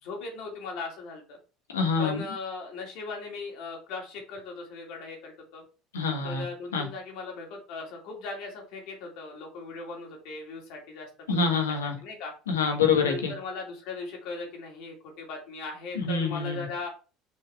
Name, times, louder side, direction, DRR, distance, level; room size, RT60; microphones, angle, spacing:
voice 1, 0.0-1.4 2.0-5.6 6.2-11.1 12.0-12.3 13.0-16.9, left 3 dB, 60° left, 0 dB, 2.6 m, -38 dB
voice 2, 1.7-2.2 5.9-6.4 6.7-6.9 11.3-11.9 12.5-13.3 15.9-16.7, left 5 dB, 75° left, 4 dB, 1.4 m, -26 dB
6.6 x 4.8 x 3.6 m, 0.35 s
figure-of-eight pair, 65°, 0 cm